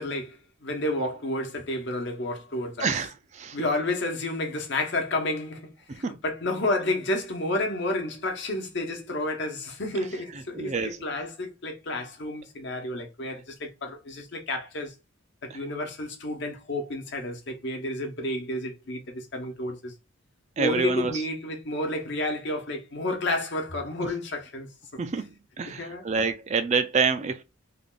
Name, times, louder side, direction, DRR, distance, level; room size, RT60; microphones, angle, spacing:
voice 1, 0.0-3.0 3.5-14.9 15.4-19.9 20.6-24.7 25.7-26.0, left 1 dB, 55° left, 1.0 m, -31 dB
voice 2, 2.8-3.6 5.9-6.2 10.6-11.0 15.5-15.6 20.6-21.1 24.0-24.1 25.0-25.3 25.6-27.4, right 5 dB, 30° right, 0.3 m, -27 dB
3.3 x 2.4 x 3.8 m
head